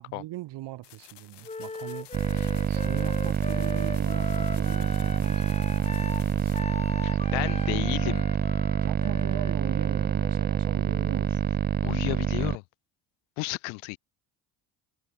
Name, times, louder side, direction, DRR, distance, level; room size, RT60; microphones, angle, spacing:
voice 1, 0.0-2.1 2.7-7.6 7.9-8.3 8.8-11.4, right 16 dB, 75° right, 5.8 m, -40 dB
sound 1, 0.8-6.6, left 14 dB, 70° left, 6.1 m, -52 dB
Wind instrument woodwind instrument, 1.4-11.3, left 3 dB, 15° left, 1.4 m, -40 dB
sound 2, 2.1-12.6, right 8 dB, 25° right, 0.4 m, -26 dB
voice 2, 7.3-8.2 11.8-12.6 13.4-14.0, left 40 dB or more, 90° left, 2.9 m, -32 dB
supercardioid pair, 70°, 42 cm